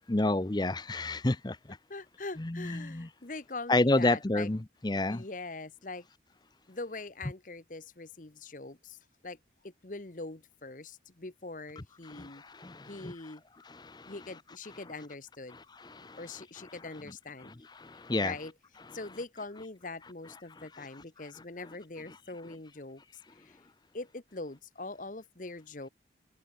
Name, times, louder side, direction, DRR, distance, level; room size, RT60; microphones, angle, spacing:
voice 1, 0.1-1.8 2.4-3.1 3.7-5.2 12.1-13.1 13.7-14.1 15.8-16.2 17.8-18.3, left 2 dB, 25° left, 0.7 m, -30 dB
voice 2, 1.9-4.5 5.1-6.1 6.7-9.4 9.6-12.4 12.9-13.4 14.1-15.6 16.2-17.5 18.2-18.5 18.9-23.0 23.4-23.6 23.9-25.9, left 3 dB, 45° left, 1.2 m, -43 dB
head